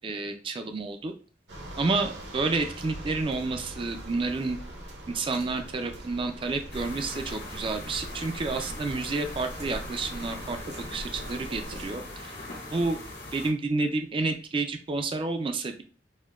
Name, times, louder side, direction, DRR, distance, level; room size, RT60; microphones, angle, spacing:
voice 1, 0.0-1.1 1.8-4.6 5.1-10.6 10.9-12.3 12.7-13.0 13.3-15.8, right 3 dB, 30° right, 6 dB, 0.4 m, -30 dB
sound 1, 1.5-11.9, right 1 dB, 75° right, 0.9 m, -42 dB
sound 2, 6.7-13.5, left 2 dB, 70° left, 1.6 m, -41 dB
6.3 x 2.1 x 2.3 m, 0.41 s
head